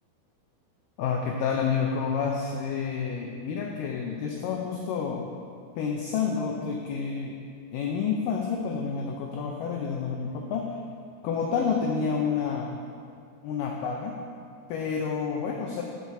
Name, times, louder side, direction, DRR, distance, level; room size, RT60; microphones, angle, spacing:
voice 1, 1.0-5.3 5.8-7.4 7.7-10.8 11.2-12.8 13.4-14.2 14.7-15.8, left 6 dB, 85° left, 1 dB, 1.9 m, -29 dB
7.0 x 5.9 x 6.6 m, 2.3 s
omnidirectional pair, 4.6 m